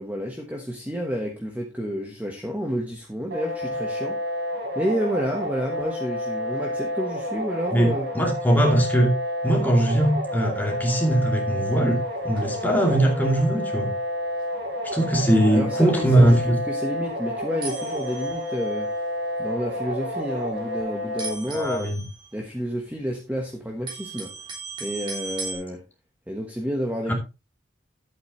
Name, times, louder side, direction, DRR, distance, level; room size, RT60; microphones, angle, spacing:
voice 1, 0.0-4.2 4.7-8.1 15.5-18.9 19.4-21.9 22.3-24.3 24.8-25.8 26.3-27.1, equal, 10° right, 1.3 m, -30 dB
sound 1, 3.3-21.3, left 1 dB, 55° right, 4.5 m, -30 dB
voice 2, 7.7-9.2 9.4-12.0 12.2-13.9 14.8-16.6 21.5-22.0 27.1-27.2, right 1 dB, 10° left, 2.5 m, -20 dB
sound 2, 11.8-12.8 13.1-13.3 13.8-14.0 14.4-14.5 14.9-15.0 15.3-15.5 16.3-16.4 17.0-17.1 17.6-19.0 19.7-20.2 20.5-20.7 21.2-23.2 23.5-25.6, right 4 dB, 25° right, 3.4 m, -38 dB
11.5 x 8.3 x 3.2 m
head